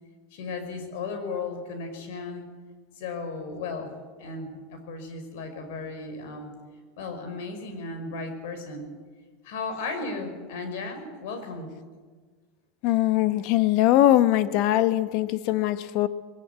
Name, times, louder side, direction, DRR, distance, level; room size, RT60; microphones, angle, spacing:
voice 1, 0.3-2.5 3.0-6.6 7.0-8.9 9.4-11.7, left 3 dB, 75° left, 7 dB, 5.5 m, -35 dB
voice 2, 12.8-16.1, left 14 dB, 60° left, 12 dB, 1.1 m, -21 dB
21.0 x 19.0 x 8.4 m, 1.5 s
supercardioid pair, 130°, 0 cm